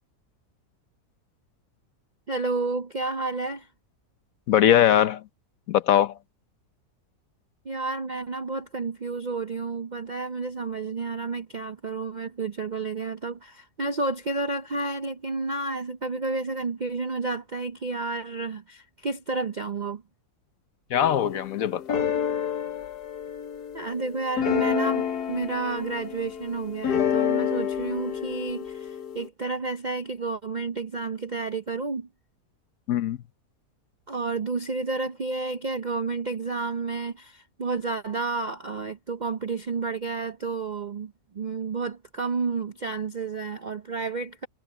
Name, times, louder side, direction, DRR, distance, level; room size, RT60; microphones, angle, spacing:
voice 1, 2.3-3.7 7.6-20.0 23.7-32.1 34.1-44.5, right 3 dB, 50° right, 0.5 m, -31 dB
voice 2, 4.5-5.2 5.7-6.1 20.9-22.0 32.9-33.2, left 10 dB, 65° left, 1.1 m, -21 dB
sound 1, 20.9-29.3, left 8 dB, 80° left, 1.7 m, -29 dB
omnidirectional pair, 1.7 m